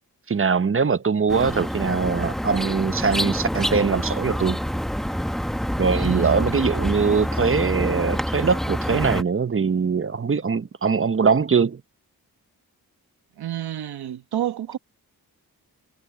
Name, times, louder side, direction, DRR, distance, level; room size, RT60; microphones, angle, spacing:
voice 1, 0.3-4.6 5.8-11.8, right 5 dB, 35° right, 1.0 m, -22 dB
sound 1, 1.3-9.2, equal, ahead, 0.9 m, -26 dB
voice 2, 5.9-6.4 13.4-14.8, right 12 dB, 85° right, 1.2 m, -29 dB
cardioid pair, 65°, 37 cm